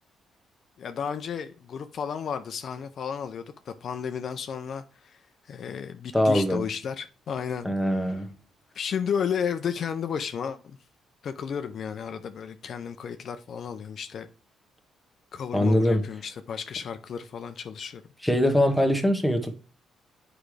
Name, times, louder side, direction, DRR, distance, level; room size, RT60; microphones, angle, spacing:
voice 1, 0.8-5.2 5.5-8.2 8.8-10.8 11.2-14.3 15.3-18.0, left 7 dB, 60° left, 0.5 m, -33 dB
voice 2, 6.1-6.6 7.6-8.3 15.5-16.0 18.2-19.6, equal, 5° left, 1.1 m, -22 dB
8.2 x 5.0 x 3.3 m
cardioid pair, 90°, 0 cm